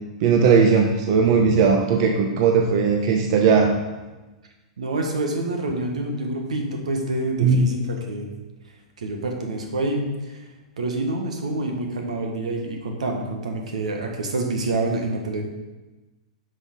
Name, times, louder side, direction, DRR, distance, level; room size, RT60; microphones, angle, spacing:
voice 1, 0.2-3.8 7.4-7.7, right 5 dB, 55° right, 3 dB, 0.9 m, -18 dB
voice 2, 4.8-8.3 9.0-10.4 10.8-15.4, right 2 dB, 85° right, 2 dB, 1.4 m, -27 dB
9.7 x 5.5 x 3.8 m, 1.2 s
hypercardioid pair, 115°, 4 cm